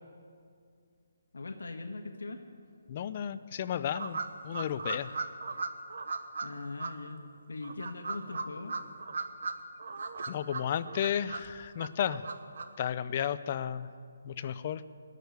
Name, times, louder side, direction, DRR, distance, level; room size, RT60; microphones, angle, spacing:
voice 1, 1.3-2.4 6.4-8.8, left 3 dB, 85° left, 5 dB, 1.3 m, -41 dB
voice 2, 2.9-5.2 10.3-12.2 12.8-13.9 14.2-14.8, left 9 dB, 35° left, 14 dB, 0.5 m, -33 dB
sound 1, 4.0-6.5 6.8-6.9 7.6-9.5 9.8-11.5 11.8-12.6, right 4 dB, 65° right, 1.0 m, -36 dB
20.0 x 6.6 x 9.6 m, 2.2 s
hypercardioid pair, 165°, 0 cm